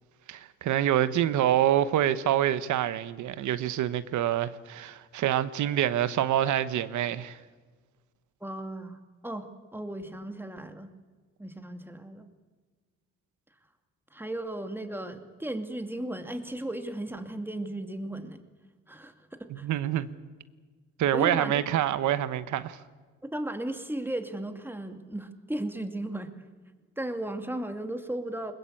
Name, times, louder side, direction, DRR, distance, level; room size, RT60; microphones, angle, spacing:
voice 1, 0.3-7.4 19.5-20.1 21.0-22.8, right 11 dB, 75° right, 1.1 m, -26 dB
voice 2, 8.4-10.9 11.4-12.3 14.1-18.4 18.9-19.7 21.1-21.5 23.2-26.3 27.0-28.5, right 1 dB, 5° right, 2.4 m, -35 dB
21.0 x 21.0 x 8.6 m
cardioid pair, 90°, 30 cm